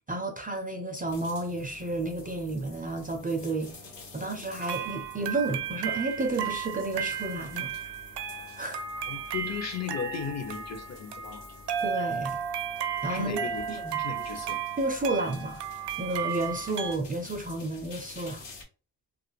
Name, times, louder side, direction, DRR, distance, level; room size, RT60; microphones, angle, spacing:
voice 1, 0.1-3.7 4.1-7.7 8.6-8.8 11.8-12.4 13.0-13.4 13.7-14.0 14.8-15.7 16.0-18.4, right 2 dB, 20° right, 0.4 m, -31 dB
sound 1, 1.1-18.6, left 4 dB, 75° left, 1.0 m, -49 dB
sound 2, 4.6-17.0, right 8 dB, 70° right, 0.5 m, -34 dB
voice 2, 9.1-11.4 13.1-14.6, left 6 dB, 40° left, 0.6 m, -36 dB
2.4 x 2.2 x 3.0 m
cardioid pair, 85°, 43 cm